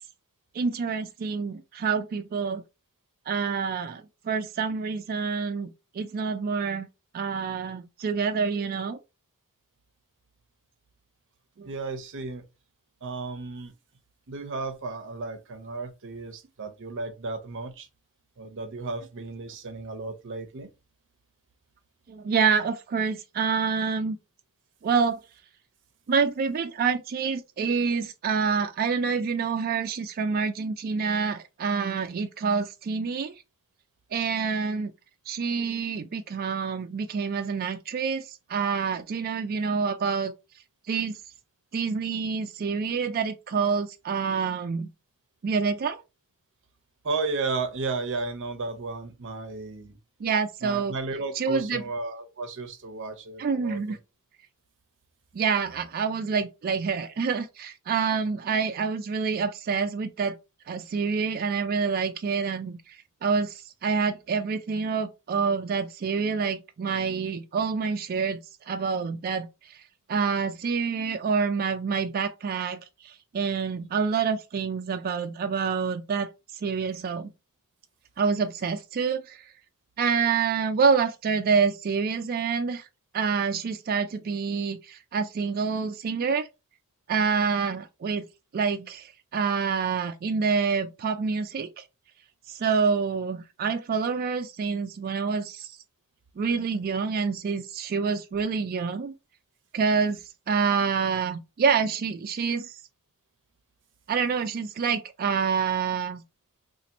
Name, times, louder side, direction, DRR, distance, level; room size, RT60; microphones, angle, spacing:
voice 1, 0.5-2.6 3.3-5.7 5.9-6.9 7.1-9.0 11.6-11.7 22.1-24.2 24.8-25.2 26.1-33.3 34.1-34.9 35.3-40.3 40.9-41.2 41.7-44.9 45.4-46.0 50.2-50.9 51.4-51.8 53.4-54.0 55.3-60.4 60.7-63.0 63.2-68.4 68.7-69.5 70.1-76.3 76.6-77.3 78.2-79.4 80.0-82.9 83.1-86.5 87.1-88.3 88.5-91.8 92.5-95.7 96.4-99.1 99.7-100.2 100.5-102.7 104.1-106.2, right 5 dB, 40° right, 0.3 m, -27 dB
voice 2, 11.6-12.4 13.0-13.7 14.3-17.9 18.4-20.7 47.0-50.0 50.6-54.0, right 3 dB, 60° right, 0.7 m, -34 dB
2.8 x 2.5 x 4.0 m
head